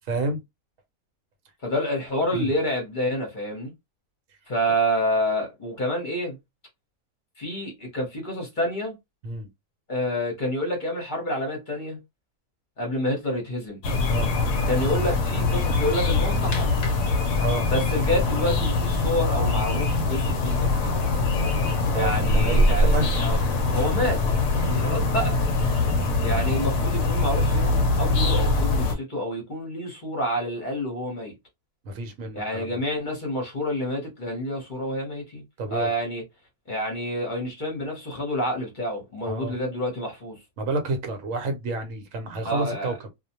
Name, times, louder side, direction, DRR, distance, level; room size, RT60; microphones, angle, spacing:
voice 1, 0.1-0.4 2.3-2.5 9.2-9.5 14.1-14.3 17.4-17.7 21.9-23.3 24.6-24.9 31.8-32.8 35.6-35.9 39.3-39.6 40.6-42.9, right 2 dB, 70° right, 1.0 m, -29 dB
voice 2, 1.6-3.7 4.5-6.4 7.4-8.9 9.9-12.0 12.8-13.8 14.7-16.7 17.7-21.0 21.9-23.4 23.7-24.2 24.6-25.4 26.2-31.3 32.3-35.4 35.7-36.2 36.7-40.4 42.4-42.9, equal, 40° left, 0.8 m, -28 dB
sound 1, 13.8-29.0, left 2 dB, 65° left, 0.8 m, -23 dB
2.4 x 2.1 x 2.7 m
omnidirectional pair, 1.5 m